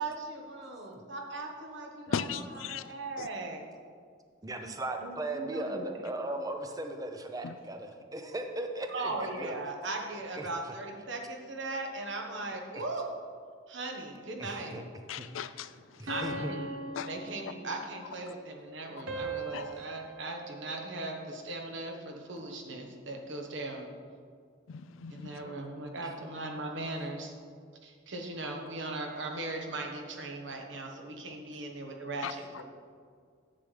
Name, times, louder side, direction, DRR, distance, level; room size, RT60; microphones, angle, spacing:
voice 1, 0.0-3.6 5.0-6.0 8.9-13.1 13.7-14.8 16.1-23.9 25.1-27.3 27.8-32.6, right 2 dB, 70° right, 2 dB, 1.2 m, -38 dB
voice 2, 2.1-2.8 15.1-15.7 17.0-17.1 19.5-19.6 24.7-25.1 32.2-32.3, left 7 dB, 90° left, 13 dB, 0.4 m, -35 dB
voice 3, 4.4-9.1 9.4-9.5 10.3-10.5 12.7-12.8 14.4-14.8 15.2-15.6 16.0-16.5 26.0-26.1, right 2 dB, 20° right, 5 dB, 0.6 m, -37 dB
sound 1, 16.1-18.0 19.1-21.5, right 2 dB, 90° right, 1.2 m, -40 dB
10.5 x 7.8 x 3.3 m, 2.1 s
head